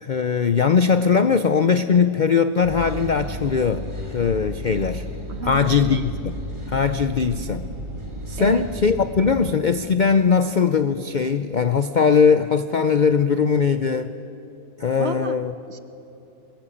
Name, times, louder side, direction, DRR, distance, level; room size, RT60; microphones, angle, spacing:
voice 1, 0.0-5.0 5.4-6.3 6.7-7.7 8.3-14.1 14.8-15.5, left 6 dB, 70° left, 11 dB, 0.4 m, -20 dB
sound 1, 2.6-9.5, equal, 15° right, 2.9 m, -33 dB
voice 2, 5.3-6.0 8.4-8.6 15.0-15.3 15.7-15.8, right 5 dB, 45° right, 10 dB, 1.2 m, -31 dB
23.5 x 21.5 x 8.6 m, 2.9 s
omnidirectional pair, 1.7 m